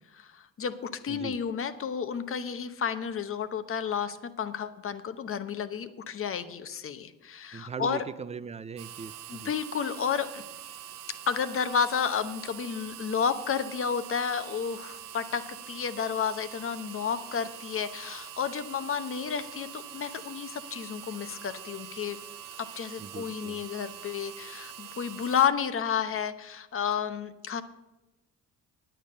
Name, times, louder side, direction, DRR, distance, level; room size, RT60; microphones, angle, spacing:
voice 1, 0.1-8.0 9.3-10.4 11.3-22.2 22.6-27.6, left 7 dB, 40° left, 11 dB, 0.9 m, -31 dB
voice 2, 7.5-9.5 23.0-23.6, right 6 dB, 20° right, 15 dB, 0.4 m, -39 dB
sound 1, 8.8-25.5, right 10 dB, 75° right, 0.8 m, -44 dB
9.5 x 8.9 x 6.6 m, 1.0 s
cardioid pair, 85°, 32 cm